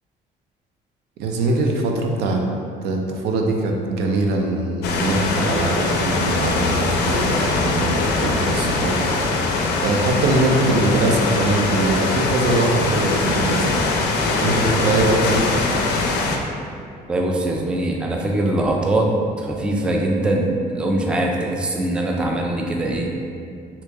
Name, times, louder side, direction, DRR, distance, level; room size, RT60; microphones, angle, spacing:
voice 1, 1.2-2.4 2.8-9.0 9.8-13.7 14.4-15.4, right 2 dB, 80° right, 1 dB, 0.5 m, -22 dB
sound 1, 4.8-16.4, left 3 dB, 80° left, 0.4 m, -22 dB
voice 2, 17.1-19.1 19.4-23.1, right 1 dB, 5° right, 0 dB, 0.3 m, -22 dB
2.9 x 2.8 x 3.3 m, 2.3 s
cardioid pair, 110°, 17 cm